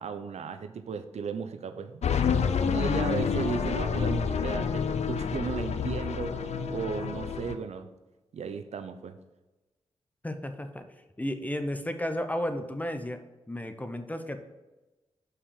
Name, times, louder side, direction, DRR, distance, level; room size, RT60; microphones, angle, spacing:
voice 1, 0.0-2.0 2.7-7.9 8.3-9.2, right 6 dB, 70° right, 9 dB, 0.7 m, -35 dB
sound 1, 2.0-7.5, left 6 dB, 70° left, 0.6 m, -28 dB
voice 2, 10.2-10.9 11.2-13.2 13.5-14.4, left 1 dB, 15° left, 8 dB, 0.9 m, -33 dB
5.8 x 4.9 x 6.5 m, 1.1 s
cardioid pair, 50°, 12 cm